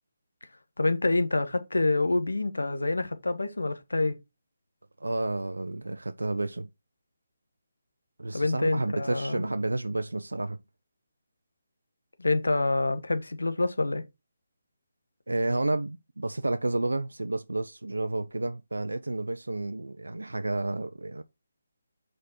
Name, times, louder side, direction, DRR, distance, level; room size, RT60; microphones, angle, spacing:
voice 1, 0.8-4.1 8.3-9.4 12.2-14.0, left 2 dB, 85° left, 1.3 m, -27 dB
voice 2, 5.0-6.7 8.2-10.6 15.3-21.2, right 2 dB, 85° right, 0.6 m, -31 dB
6.7 x 5.2 x 4.3 m
figure-of-eight pair, 150°, 0 cm